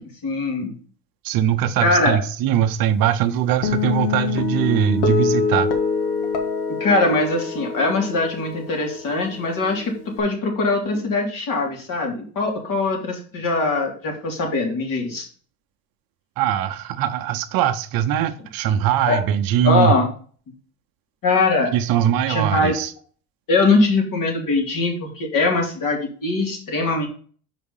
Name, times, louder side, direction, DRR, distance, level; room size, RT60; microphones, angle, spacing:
voice 1, 0.2-0.7 1.8-2.2 6.7-15.3 19.1-19.2 19.6-20.1 21.2-21.7 22.3-22.7 23.5-27.1, left 3 dB, 50° left, 3.3 m, -21 dB
voice 2, 1.2-5.7 16.4-19.9 21.7-22.9, right 10 dB, 60° right, 0.8 m, -21 dB
Guitar, 3.6-10.2, left 5 dB, 75° left, 1.8 m, -25 dB
5.8 x 4.9 x 5.6 m
supercardioid pair, 105°, 40 cm